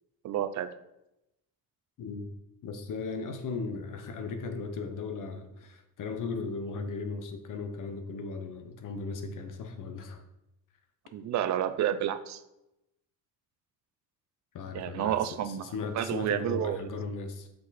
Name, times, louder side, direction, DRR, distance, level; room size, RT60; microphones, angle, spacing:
voice 1, 0.2-0.7 11.1-12.4 14.7-15.7 15.9-16.8, right 10 dB, 50° right, 12 dB, 0.5 m, -30 dB
voice 2, 2.6-10.2 14.5-17.5, left 4 dB, 60° left, 7 dB, 1.0 m, -37 dB
6.3 x 4.8 x 4.2 m, 0.89 s
cardioid pair, 115°, 36 cm